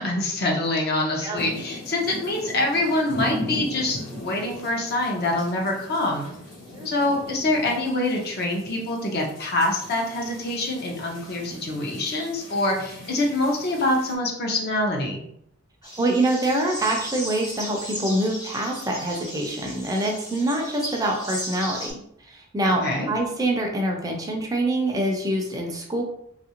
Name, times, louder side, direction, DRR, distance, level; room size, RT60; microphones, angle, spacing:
voice 1, 0.0-6.3 6.8-15.2 22.7-23.1, left 2 dB, 50° left, 0 dB, 0.7 m, -25 dB
sound 1, 1.4-14.1, left 1 dB, 85° left, 1.3 m, -39 dB
sound 2, 15.8-21.9, equal, 20° left, 0.8 m, -36 dB
voice 2, 16.0-22.0 22.3-26.0, right 1 dB, 20° right, 1 dB, 0.4 m, -25 dB
3.1 x 2.5 x 2.8 m, 0.72 s
head